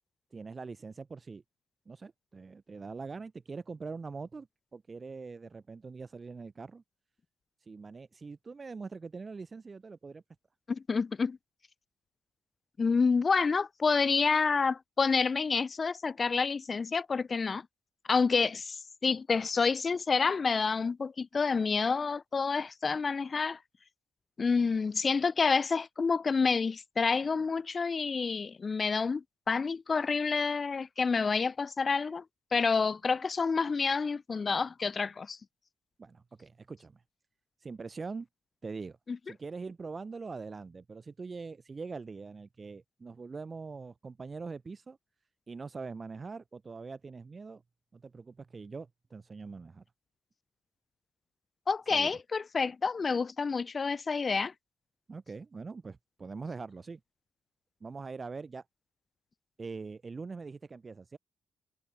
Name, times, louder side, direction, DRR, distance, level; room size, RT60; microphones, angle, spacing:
voice 1, 0.3-1.4 1.9-4.5 4.7-6.8 7.6-10.2 36.0-37.0 37.6-38.3 38.6-39.0 39.2-45.0 45.5-47.6 47.9-49.8 51.9-52.1 55.1-57.0 57.8-58.6 59.6-61.2, right 4 dB, 35° right, 0.5 m, -43 dB
voice 2, 10.7-11.4 12.8-17.7 18.1-23.6 24.4-32.2 32.5-35.4 39.1-39.2 51.7-54.5, left 5 dB, 40° left, 0.4 m, -28 dB
hypercardioid pair, 40°, 0 cm